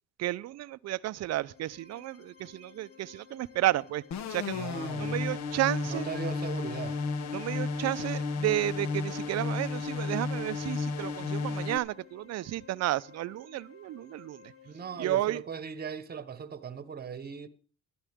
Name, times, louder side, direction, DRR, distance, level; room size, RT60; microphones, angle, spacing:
voice 1, 0.2-4.0 4.3-6.1 7.3-14.5 15.0-15.4, right 14 dB, 55° right, 0.6 m, -32 dB
sound 1, 1.0-15.1, left 7 dB, 45° left, 2.2 m, -56 dB
sound 2, 4.1-11.8, left 4 dB, 60° left, 1.3 m, -33 dB
voice 2, 4.5-5.2 5.8-7.0 14.6-17.5, right 6 dB, 30° right, 1.2 m, -39 dB
16.0 x 12.5 x 3.6 m
cardioid pair, 100°, 32 cm